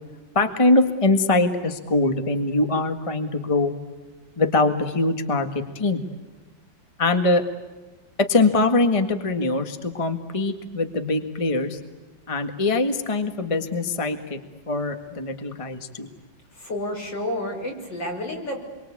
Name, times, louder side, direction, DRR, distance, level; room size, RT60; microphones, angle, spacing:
voice 1, 0.3-3.7 4.4-5.5 5.7-6.0 7.0-7.4 8.2-11.8 12.3-14.4 14.7-16.1, left 2 dB, 15° left, 6 dB, 1.6 m, -22 dB
voice 2, 16.5-18.6, left 1 dB, 65° left, 2 dB, 6.7 m, -30 dB
28.0 x 24.0 x 8.6 m, 1.2 s
omnidirectional pair, 2.1 m